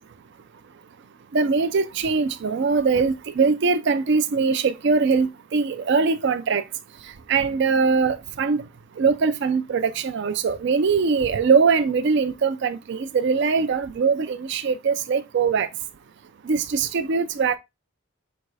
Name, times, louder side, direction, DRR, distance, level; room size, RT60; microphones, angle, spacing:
voice 1, 1.3-6.6 7.3-8.6 9.0-15.7 16.5-17.6, right 5 dB, 55° right, 0.4 m, -22 dB
5.2 x 2.2 x 4.6 m
head